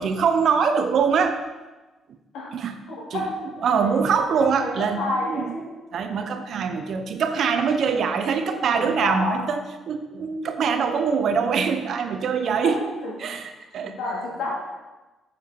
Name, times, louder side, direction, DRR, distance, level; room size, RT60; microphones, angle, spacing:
voice 1, 0.0-1.4 2.5-2.8 3.1-3.2 3.6-5.5 5.9-12.8 13.2-14.0, right 6 dB, 65° right, 8 dB, 0.9 m, -23 dB
voice 2, 2.9-3.4 3.8-4.2 4.6-5.7 8.7-9.4 12.6-13.2 13.8-14.5, left 2 dB, 85° left, -4 dB, 3.3 m, -30 dB
7.9 x 6.9 x 4.6 m, 1.2 s
cardioid pair, 90°, 0 cm